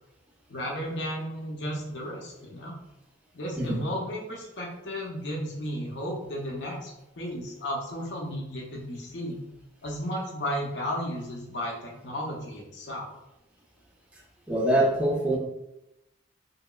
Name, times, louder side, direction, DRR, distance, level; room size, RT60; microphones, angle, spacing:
voice 1, 0.5-2.7 3.3-9.3 9.8-13.1, equal, 60° left, -2 dB, 0.6 m, -34 dB
voice 2, 14.5-15.4, right 1 dB, 5° right, -2 dB, 0.5 m, -24 dB
3.2 x 2.9 x 2.2 m, 0.88 s
head